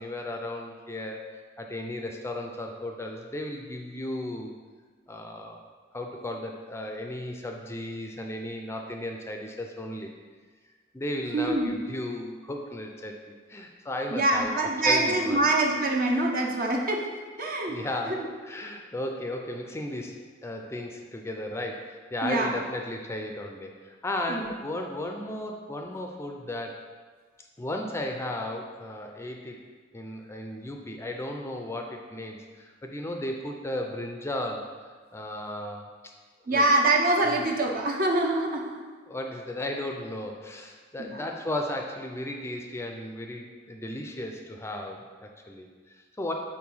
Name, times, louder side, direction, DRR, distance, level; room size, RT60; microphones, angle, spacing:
voice 1, 0.0-4.5 5.1-5.6 5.9-10.1 10.9-14.5 14.8-15.4 17.7-26.8 27.6-29.6 29.9-34.7 35.1-35.9 36.5-36.6 37.2-37.5 39.1-46.3, left 1 dB, 15° left, 2 dB, 0.4 m, -35 dB
voice 2, 11.3-11.7 14.1-17.1 17.4-17.8 18.1-18.3 22.2-22.5 24.3-24.5 36.5-38.8 41.0-41.3, right 2 dB, 50° right, 1 dB, 0.8 m, -25 dB
4.7 x 4.4 x 5.4 m, 1.5 s
head